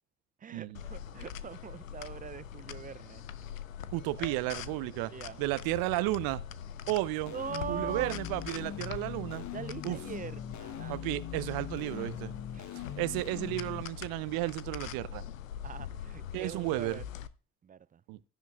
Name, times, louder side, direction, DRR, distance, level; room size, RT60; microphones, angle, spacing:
voice 1, 0.4-3.2 4.2-4.6 5.1-5.4 5.8-5.9 7.3-8.2 9.5-11.1 12.5-12.7 15.6-17.0 17.6-18.0, right 7 dB, 20° right, 0.4 m, -42 dB
sound 1, 0.7-17.3, left 9 dB, 85° left, 0.6 m, -43 dB
voice 2, 3.9-5.1 5.4-6.4 6.9-7.3 7.7-9.4 9.8-10.0 10.9-12.3 12.7-15.2 16.3-17.0 18.1-18.2, right 19 dB, 65° right, 0.7 m, -33 dB
sound 2, 7.3-13.8, left 9 dB, 45° left, 0.9 m, -41 dB
15.5 x 10.5 x 2.3 m
figure-of-eight pair, 45°, 39 cm